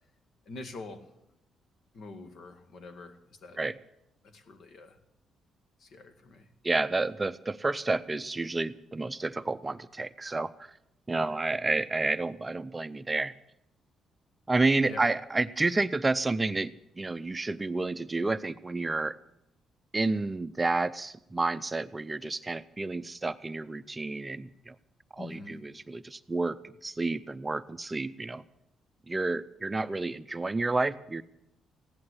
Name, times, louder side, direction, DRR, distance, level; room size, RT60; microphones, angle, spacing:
voice 1, 0.5-1.1 1.9-3.6 4.2-5.0 5.8-6.5 11.1-11.4 14.9-15.1 25.2-25.5, left 3 dB, 60° left, 8 dB, 1.8 m, -45 dB
voice 2, 6.6-10.8 11.1-13.3 14.5-19.2 19.9-24.8 25.1-28.4 29.1-31.2, right 3 dB, 20° right, 12 dB, 0.6 m, -30 dB
16.0 x 11.0 x 8.0 m, 0.82 s
cardioid pair, 90°, 0 cm